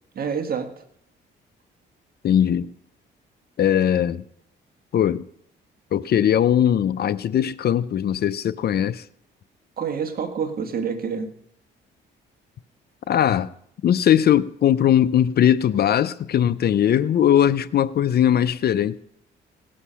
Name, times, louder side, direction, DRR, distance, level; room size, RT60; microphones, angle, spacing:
voice 1, 0.1-0.7 9.8-11.3, right 6 dB, 50° right, 1.6 m, -27 dB
voice 2, 2.2-2.7 3.6-4.2 4.9-5.2 5.9-9.0 13.1-13.5 13.8-19.0, left 10 dB, 55° left, 0.5 m, -19 dB
18.0 x 6.5 x 5.7 m
cardioid pair, 90°, 20 cm